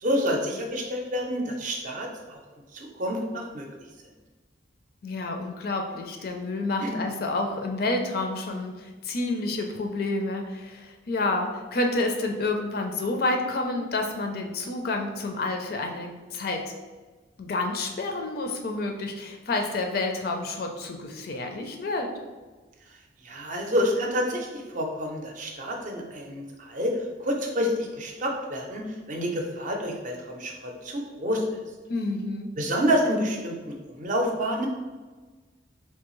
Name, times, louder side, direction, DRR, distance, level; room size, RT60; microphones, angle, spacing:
voice 1, 0.0-2.4 2.7-3.7 6.8-7.0 23.2-31.4 32.6-34.7, equal, 45° right, 1 dB, 0.5 m, -28 dB
voice 2, 5.0-16.7 17.4-22.1 31.9-32.5, left 2 dB, 55° left, 3 dB, 0.4 m, -29 dB
3.5 x 2.7 x 3.0 m, 1.3 s
head